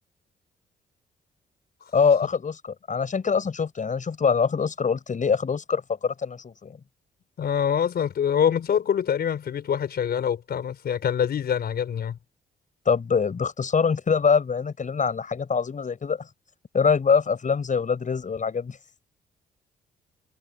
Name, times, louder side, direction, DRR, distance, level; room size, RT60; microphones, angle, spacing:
voice 1, 1.9-6.8 12.9-16.3 16.7-18.8, left 5 dB, 45° left, 5.8 m, -24 dB
voice 2, 7.4-12.2, left 8 dB, 65° left, 4.4 m, -25 dB
supercardioid pair, 55°, 18 cm